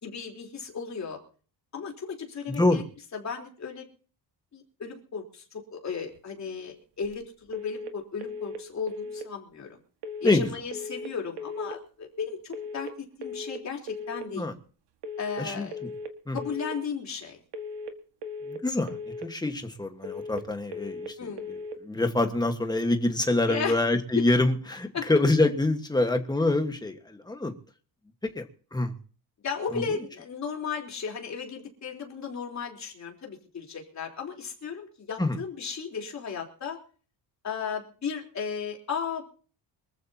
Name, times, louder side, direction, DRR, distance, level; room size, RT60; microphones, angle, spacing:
voice 1, 0.0-1.2 1.7-2.8 3.1-3.8 4.5-9.8 10.2-12.9 13.2-14.5 15.2-15.8 16.3-17.4 21.2-21.4 23.5-23.8 24.1-24.2 24.9-25.1 29.4-36.8 37.4-39.2, left 6 dB, 40° left, 0 dB, 3.9 m, -35 dB
voice 2, 2.5-2.8 10.2-10.5 14.4-14.5 15.4-15.9 16.3-16.4 18.5-27.5 28.2-28.9 29.7-29.8 35.2-35.4, left 2 dB, 10° left, 6 dB, 1.5 m, -26 dB
sound 1, 7.5-7.9 8.2-8.6 8.9-9.3 10.0-10.4 10.7-11.1 11.4-11.8 12.5-12.9 13.2-13.6 13.9-14.3 15.0-15.4 15.7-16.1 16.4-16.8 17.5-17.9 18.2-18.6 18.9-19.3 20.0-20.4 20.7-21.1 21.4-21.8, left 2 dB, 70° right, 1.9 m, -37 dB
25.0 x 14.5 x 2.9 m, 0.40 s
cardioid pair, 165°, 43 cm